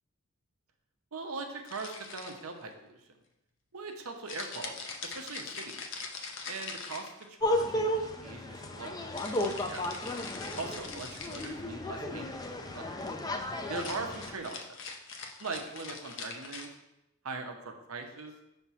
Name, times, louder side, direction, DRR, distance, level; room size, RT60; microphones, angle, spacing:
voice 1, 1.1-3.1 3.7-5.7 6.4-9.9 10.6-13.0 13.7-14.8 15.4-16.8 17.2-18.3, right 3 dB, 80° right, 4 dB, 0.9 m, -41 dB
sound 1, 1.6-2.6 4.3-7.5 9.2-11.6 13.6-16.7, left 4 dB, 55° left, 0.7 m, -42 dB
sound 2, 7.4-14.4, left 1 dB, 15° left, 0.4 m, -34 dB
5.8 x 3.6 x 5.7 m, 0.89 s
head